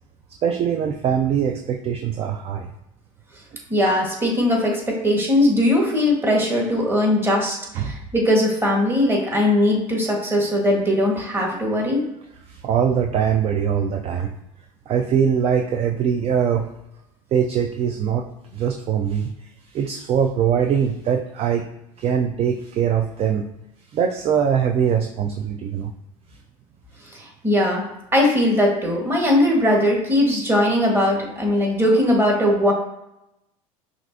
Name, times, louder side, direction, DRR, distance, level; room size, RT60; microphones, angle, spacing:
voice 1, 0.4-2.7 7.8-8.0 12.5-14.3 14.9-16.7 17.3-18.3 18.5-19.3 19.7-21.7 22.0-23.5 23.9-25.9, right 8 dB, 35° right, 4 dB, 0.4 m, -22 dB
voice 2, 3.7-12.0 27.1-27.8 28.1-32.7, left 1 dB, 15° right, -1 dB, 1.3 m, -20 dB
5.8 x 2.5 x 2.6 m, 0.86 s
hypercardioid pair, 85°, 17 cm